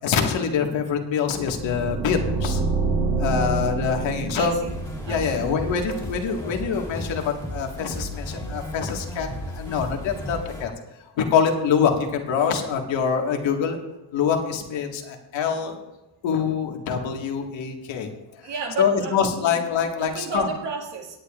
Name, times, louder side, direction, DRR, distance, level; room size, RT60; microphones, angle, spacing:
voice 1, 0.0-2.6 3.2-4.5 5.1-10.7 11.2-13.8 14.1-15.8 16.2-18.1 18.8-20.5, left 6 dB, 70° left, 2 dB, 1.9 m, -25 dB
sound 1, 1.3-6.2, right 3 dB, 50° right, 2.1 m, -27 dB
voice 2, 4.3-4.7 5.0-5.3 18.4-19.5 20.0-21.2, right 4 dB, 65° right, 0 dB, 2.1 m, -32 dB
sound 2, 4.6-10.6, equal, 5° left, 2.5 m, -34 dB
17.5 x 10.0 x 2.5 m, 0.99 s
cardioid pair, 150°, 46 cm